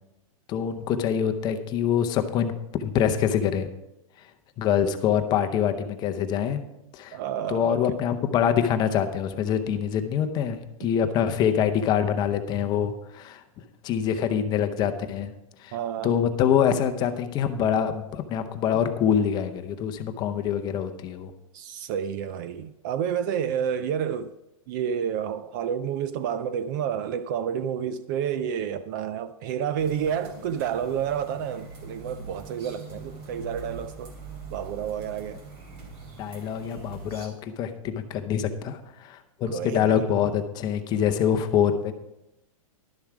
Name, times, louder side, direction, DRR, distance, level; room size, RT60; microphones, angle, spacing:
voice 1, 0.5-2.5 2.8-3.7 4.6-6.6 6.9-7.2 7.5-13.4 13.8-15.3 15.6-15.7 16.0-21.3 36.2-41.9, left 8 dB, 25° left, 0.7 m, -25 dB
voice 2, 7.1-8.0 15.7-16.1 21.5-24.3 24.7-34.1 34.5-35.4 39.5-40.0, right 8 dB, 35° right, 0.4 m, -30 dB
sound 1, 29.8-37.3, right 3 dB, 50° right, 2.9 m, -42 dB
11.5 x 7.1 x 4.8 m
hypercardioid pair, 155°, 18 cm